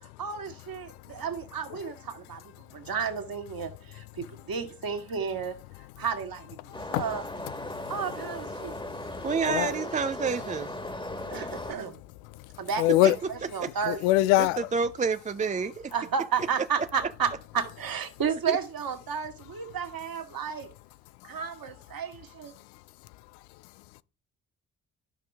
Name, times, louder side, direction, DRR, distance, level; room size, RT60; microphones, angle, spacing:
voice 1, 0.0-5.6 6.0-7.2 7.9-8.8 9.5-9.9 11.3-12.0 12.6-14.3 15.9-20.7 21.2-22.5, right 6 dB, 50° right, 2.1 m, -32 dB
voice 2, 6.7-7.0 7.6-8.0 8.6-9.7 11.1-11.7 12.3-13.2 13.8-14.7, left 16 dB, 75° left, 0.5 m, -27 dB
sound 1, 6.7-11.7, left 1 dB, 10° left, 1.6 m, -37 dB
voice 3, 9.2-10.7 13.6-13.7 14.4-14.5 14.7-15.9 18.5-18.6, right 5 dB, 15° right, 0.4 m, -28 dB
12.0 x 5.9 x 3.5 m
hypercardioid pair, 45°, 46 cm